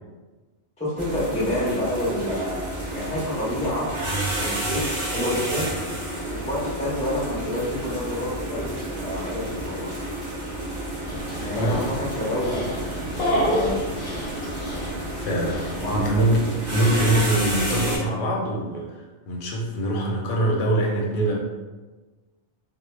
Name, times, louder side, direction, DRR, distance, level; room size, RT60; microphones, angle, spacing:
voice 1, 0.8-2.6 2.9-3.9 4.4-5.7 6.3-9.9 11.4-13.1 13.4-13.8 15.8-16.1, left 1 dB, 10° left, -7 dB, 0.4 m, -28 dB
sound 1, 1.0-18.0, right 1 dB, 45° right, 0.7 m, -30 dB
Dog, 11.1-16.1, equal, 60° left, 0.7 m, -29 dB
voice 2, 11.3-11.9 15.2-16.4 16.7-21.3, right 1 dB, 90° left, 0 dB, 0.9 m, -24 dB
2.1 x 2.0 x 3.1 m, 1.2 s
omnidirectional pair, 1.2 m